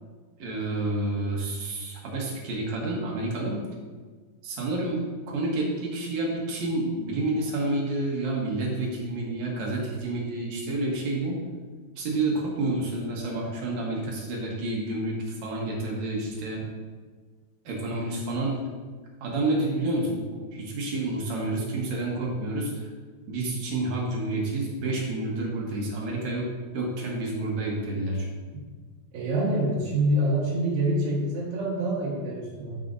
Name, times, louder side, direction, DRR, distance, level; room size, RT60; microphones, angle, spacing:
voice 1, 0.4-3.6 4.4-11.4 12.0-16.7 17.7-18.6 19.2-22.9 23.3-28.3, right 2 dB, 60° right, -2 dB, 2.1 m, -29 dB
voice 2, 29.1-32.8, right 1 dB, 85° right, -4 dB, 3.7 m, -26 dB
13.5 x 4.9 x 2.6 m, 1.5 s
omnidirectional pair, 4.5 m